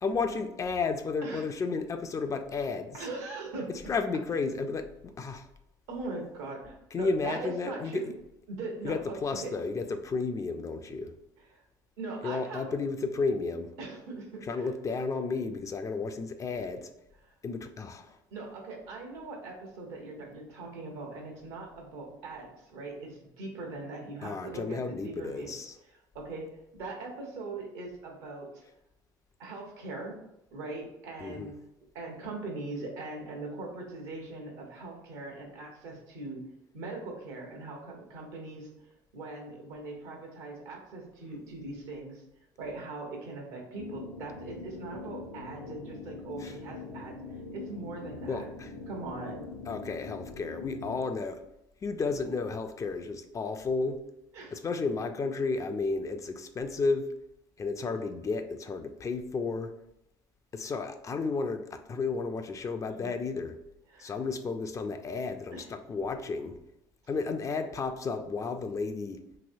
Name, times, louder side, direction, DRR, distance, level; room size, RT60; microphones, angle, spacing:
voice 1, 0.0-3.0 3.9-5.5 6.9-8.1 8.8-11.1 12.2-13.7 14.5-16.9 17.4-18.2 24.2-25.8 31.2-31.5 46.4-46.5 48.3-48.7 49.7-51.4 51.8-54.0 54.5-57.1 57.6-59.7 60.5-63.6 64.0-66.6 67.1-69.2, left 4 dB, 30° left, 7 dB, 0.4 m, -32 dB
voice 2, 2.9-3.7 5.9-8.1 8.5-9.5 11.4-11.6 12.0-12.7 13.8-14.7 17.3-17.4 18.3-25.5 26.1-28.6 29.4-30.2 30.5-31.5 31.9-36.4 36.7-38.9 39.1-42.2 42.6-48.5 48.9-49.4 54.3-54.6 60.6-60.7 62.9-63.1 63.9-64.2 65.5-65.7, right 3 dB, 75° right, 1 dB, 0.9 m, -41 dB
sound 1, 43.8-51.0, left 4 dB, 90° left, 0.5 m, -43 dB
3.0 x 2.7 x 2.6 m, 0.83 s
hypercardioid pair, 65°, 10 cm